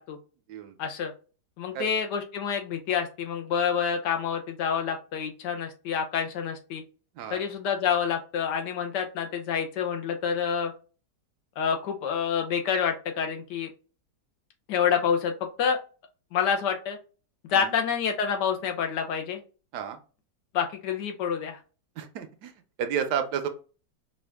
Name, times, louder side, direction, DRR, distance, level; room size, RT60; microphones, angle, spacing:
voice 1, 0.8-1.1 1.6-6.8 7.3-10.7 11.6-13.7 14.7-15.3 15.6-15.8 16.3-17.0 17.5-19.4 20.5-21.6, left 7 dB, 75° left, 4 dB, 1.3 m, -27 dB
voice 2, 22.0-22.5 22.8-23.5, right 8 dB, 75° right, 8 dB, 1.1 m, -31 dB
5.0 x 2.4 x 3.4 m, 0.36 s
omnidirectional pair, 1.9 m